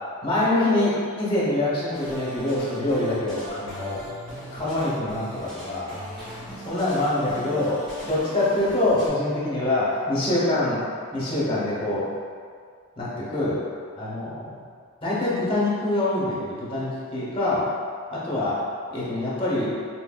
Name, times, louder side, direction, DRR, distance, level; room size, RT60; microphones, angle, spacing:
voice 1, 0.2-4.0 4.5-5.9 6.6-10.8 11.1-12.1 13.0-13.6 14.0-14.5 15.0-17.7 18.1-18.6 18.9-19.7, left 2 dB, 25° left, -8 dB, 0.9 m, -25 dB
sound 1, 1.9-9.1, equal, 5° left, 1.2 m, -39 dB
4.2 x 2.6 x 2.3 m, 2.1 s
head